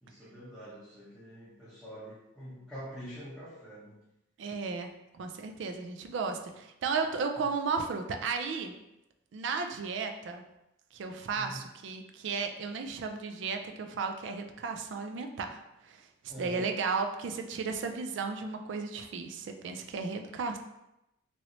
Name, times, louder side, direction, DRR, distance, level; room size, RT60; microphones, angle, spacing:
voice 1, 0.0-4.0 11.3-11.6 16.3-16.7, equal, ahead, -11 dB, 0.6 m, -45 dB
voice 2, 4.4-8.8 9.3-10.4 10.9-16.0 16.4-20.6, right 4 dB, 60° right, 5 dB, 0.3 m, -34 dB
3.0 x 2.9 x 2.6 m, 0.89 s
head